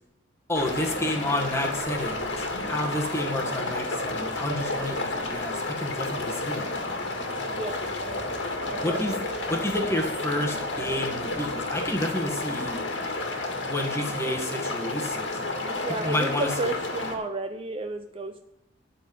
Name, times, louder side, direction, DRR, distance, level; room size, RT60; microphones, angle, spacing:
sound 1, 0.5-17.2, left 2 dB, 70° left, 1.8 m, -31 dB
voice 1, 0.5-6.8 8.8-9.2 9.5-12.8 13.7-15.5 16.0-16.5, left 1 dB, 15° left, 2 dB, 1.5 m, -30 dB
Under an autobahn bridge, 1.7-12.4, right 2 dB, 65° right, 2.1 m, -43 dB
voice 2, 7.4-7.9 8.7-9.6 15.8-18.4, right 2 dB, 30° right, 7 dB, 0.5 m, -33 dB
12.5 x 4.2 x 8.3 m, 0.82 s
head